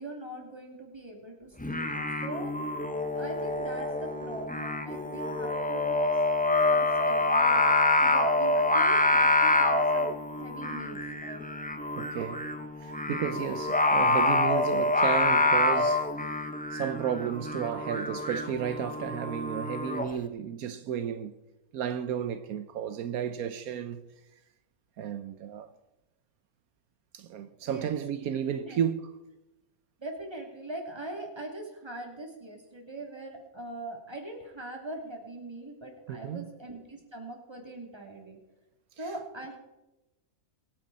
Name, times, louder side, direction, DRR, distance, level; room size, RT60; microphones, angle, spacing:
voice 1, 0.0-1.8 2.2-2.5 3.1-7.6 8.0-11.4 27.6-28.0 28.6-28.8 30.0-38.4 39.0-39.6, right 2 dB, 15° right, 2.9 m, -42 dB
Singing, 1.6-20.1, left 2 dB, 5° left, 0.7 m, -26 dB
voice 2, 12.0-12.5 12.8-16.3 16.7-21.3 21.7-24.0 25.0-25.7 27.1-29.0 36.1-36.4, right 9 dB, 80° right, 1.2 m, -33 dB
23.5 x 9.5 x 4.1 m
omnidirectional pair, 1.5 m